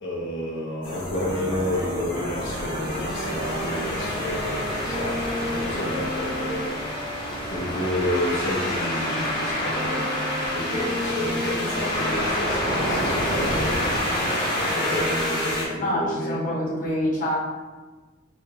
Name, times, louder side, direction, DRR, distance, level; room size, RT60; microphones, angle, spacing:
voice 1, 0.0-6.8 7.5-10.3 10.5-13.8 14.7-16.4, left 1 dB, 65° left, -3 dB, 0.8 m, -30 dB
sound 1, 0.8-15.6, left 1 dB, 25° left, 0.9 m, -28 dB
sound 2, 1.1-8.2 8.8-15.9, equal, 20° right, 0.4 m, -34 dB
voice 2, 15.8-17.4, equal, 40° left, -7 dB, 1.3 m, -26 dB
3.7 x 2.2 x 3.8 m, 1.3 s
head